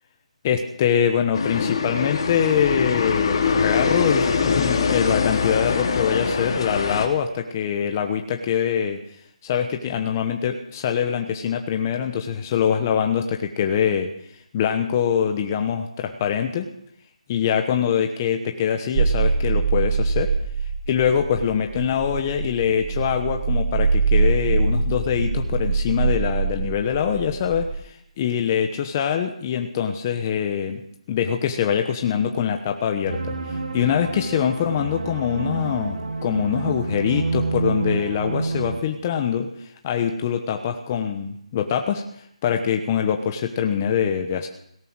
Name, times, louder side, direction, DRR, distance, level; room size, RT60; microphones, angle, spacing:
voice 1, 0.4-9.0 9.4-14.1 14.5-16.7 17.3-20.3 20.9-30.8 31.1-33.2 33.5-42.0 42.4-44.5, left 8 dB, 25° left, 5 dB, 1.1 m, -24 dB
sound 1, 1.3-7.1, left 5 dB, 45° left, 2.6 m, -23 dB
sound 2, 19.0-27.7, right 4 dB, 30° right, 3.1 m, -23 dB
sound 3, 33.1-38.8, right 3 dB, 70° right, 2.1 m, -28 dB
17.5 x 12.5 x 6.3 m, 0.70 s
hypercardioid pair, 165°, 4 cm